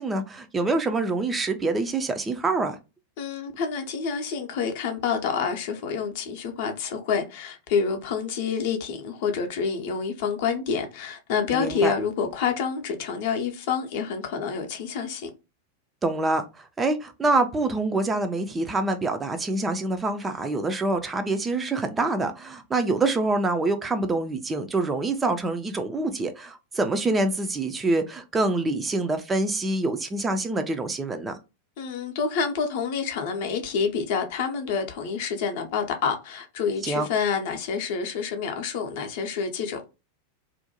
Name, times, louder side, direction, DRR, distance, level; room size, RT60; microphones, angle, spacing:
voice 1, 0.0-2.8 11.5-11.9 16.0-31.4 36.8-37.1, right 2 dB, 15° right, 0.3 m, -26 dB
voice 2, 3.2-15.3 31.8-39.8, left 6 dB, 50° left, 0.5 m, -28 dB
2.5 x 2.1 x 2.8 m
figure-of-eight pair, 90°, 0 cm